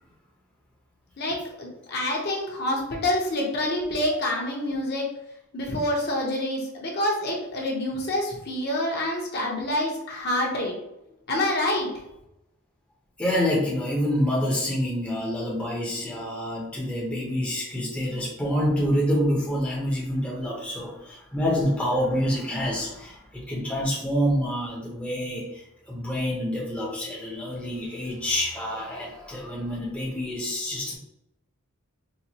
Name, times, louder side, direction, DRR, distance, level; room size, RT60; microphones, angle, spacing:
voice 1, 1.2-5.1 5.5-10.8 11.3-11.9, left 1 dB, 45° left, -1 dB, 0.7 m, -27 dB
voice 2, 13.2-31.0, equal, 5° left, -4 dB, 0.6 m, -27 dB
4.0 x 2.2 x 2.8 m, 0.85 s
head